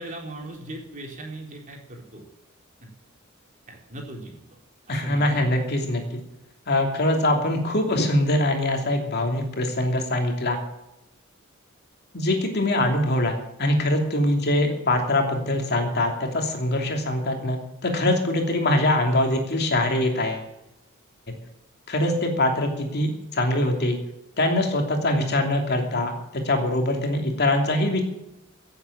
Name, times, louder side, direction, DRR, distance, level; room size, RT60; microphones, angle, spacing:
voice 1, 0.0-2.2 2.8-2.9 3.7-4.4 4.9-5.4, right 1 dB, 40° right, 0 dB, 3.9 m, -38 dB
voice 2, 4.9-6.0 6.7-10.6 12.1-13.3 13.6-20.4 21.9-24.0 24.4-28.0, left 1 dB, 50° left, 3 dB, 2.9 m, -23 dB
16.5 x 8.0 x 7.3 m, 0.90 s
head